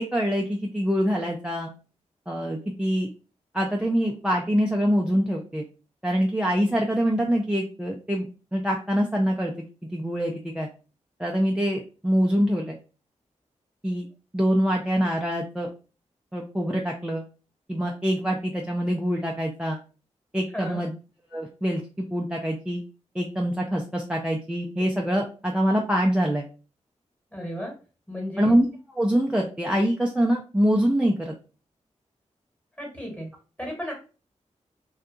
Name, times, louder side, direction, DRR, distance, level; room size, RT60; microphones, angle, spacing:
voice 1, 0.0-1.7 2.3-3.1 3.5-5.6 6.0-10.7 11.2-12.8 13.8-14.1 14.3-15.7 16.3-17.2 17.7-19.8 20.3-20.9 21.3-22.8 23.1-26.5 28.4-28.7 29.0-31.3, equal, 10° right, 0 dB, 0.4 m, -25 dB
voice 2, 20.5-20.9 27.3-27.7 28.1-28.5 32.8-33.3 33.6-33.9, equal, 10° left, -1 dB, 1.3 m, -33 dB
2.7 x 2.2 x 2.4 m, 0.34 s
cardioid pair, 65°, 12 cm